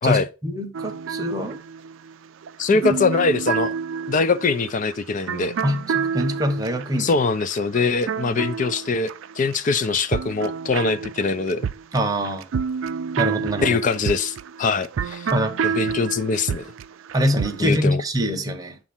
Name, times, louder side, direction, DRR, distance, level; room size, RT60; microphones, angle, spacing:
voice 1, 0.0-1.6 2.7-2.8 5.6-7.1 11.9-12.5 13.2-13.8 15.3-15.7 17.1-18.8, equal, 20° right, 0.8 m, -24 dB
sound 1, 0.7-9.6 9.8-17.7, right 6 dB, 70° right, 0.4 m, -29 dB
voice 2, 2.6-3.7 4.1-5.5 7.0-11.6 13.6-15.3 15.6-16.7 17.6-18.0, left 4 dB, 40° left, 0.4 m, -22 dB
7.1 x 2.5 x 5.4 m
head